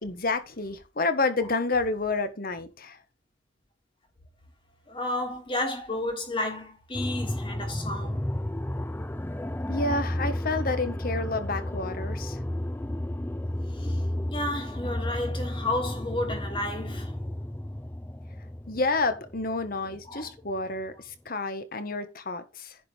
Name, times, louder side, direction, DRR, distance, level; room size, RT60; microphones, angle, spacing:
voice 1, 0.0-3.0 9.7-12.4 18.7-22.8, left 3 dB, 50° left, 1.4 m, -29 dB
voice 2, 4.9-8.2 13.7-14.0 14.3-17.1 20.0-20.3, left 2 dB, 25° left, 3.1 m, -32 dB
sound 1, 6.9-20.6, left 1 dB, 10° left, 0.4 m, -32 dB
10.5 x 5.0 x 5.0 m
head